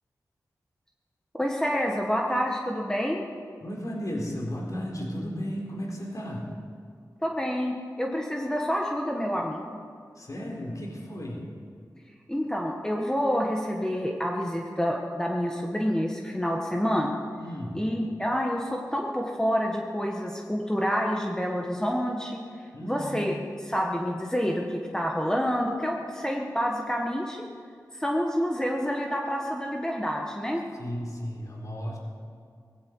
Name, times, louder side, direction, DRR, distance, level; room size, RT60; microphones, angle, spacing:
voice 1, 1.3-3.2 7.2-9.6 12.3-17.2 17.7-22.4 22.8-23.3 23.7-27.4 27.9-30.6, equal, 10° left, 0 dB, 1.6 m, -28 dB
voice 2, 3.6-6.5 10.1-11.4 17.4-17.8 22.7-23.3 30.8-32.0, equal, 55° left, -1 dB, 4.3 m, -34 dB
18.5 x 15.5 x 4.8 m, 2.3 s
cardioid pair, 55°, 7 cm